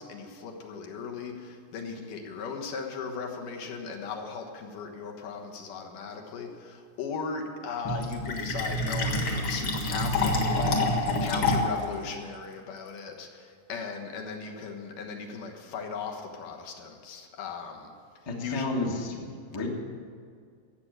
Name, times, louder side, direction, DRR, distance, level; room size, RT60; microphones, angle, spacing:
voice 1, 0.0-17.9 18.4-18.7, left 5 dB, 75° left, 2 dB, 2.9 m, -37 dB
Fill (with liquid), 7.8-11.8, left 2 dB, 45° left, 2.0 m, -27 dB
voice 2, 18.2-19.7, left 2 dB, 15° left, -1 dB, 0.8 m, -32 dB
15.0 x 8.0 x 8.8 m, 2.1 s
omnidirectional pair, 3.9 m